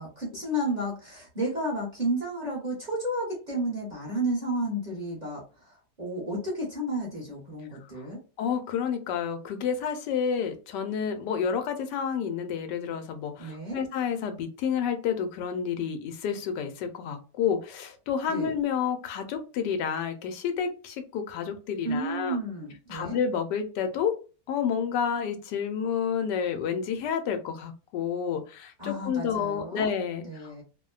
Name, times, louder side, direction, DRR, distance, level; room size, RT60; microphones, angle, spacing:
voice 1, 0.0-8.2 13.4-13.8 18.3-18.5 21.8-23.2 28.8-29.9 30.2-30.6, right 1 dB, 35° right, -4 dB, 0.9 m, -32 dB
voice 2, 8.4-22.4 22.9-24.1 24.5-30.6, left 7 dB, 85° left, 6 dB, 1.2 m, -30 dB
2.9 x 2.1 x 2.3 m, 0.34 s
omnidirectional pair, 1.8 m